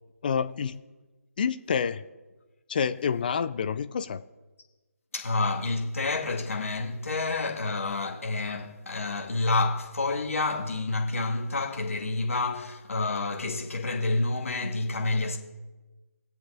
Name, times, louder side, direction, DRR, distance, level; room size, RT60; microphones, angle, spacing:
voice 1, 0.2-0.8 1.4-2.0 2.7-4.2, left 6 dB, 35° left, 0.5 m, -28 dB
voice 2, 5.1-15.4, left 3 dB, 55° left, 2.0 m, -29 dB
21.0 x 7.8 x 2.7 m
figure-of-eight pair, 150°, 8 cm